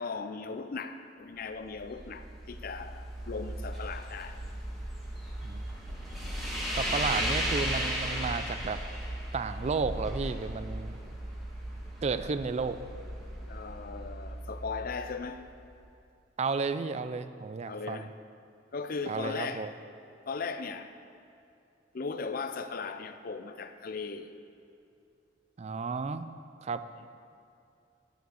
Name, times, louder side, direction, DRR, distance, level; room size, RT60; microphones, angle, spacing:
voice 1, 0.0-4.4 13.5-15.5 17.7-18.1 18.7-19.7 20.3-20.9 21.9-24.3, left 4 dB, 55° left, 0.5 m, -37 dB
sound 1, 1.5-15.7, equal, ahead, 1.8 m, -36 dB
voice 2, 6.8-8.8 9.3-11.0 12.0-12.8 16.4-18.1 19.1-19.7 25.6-26.3 26.6-26.8, right 4 dB, 35° right, 0.4 m, -32 dB
9.4 x 6.5 x 7.0 m
head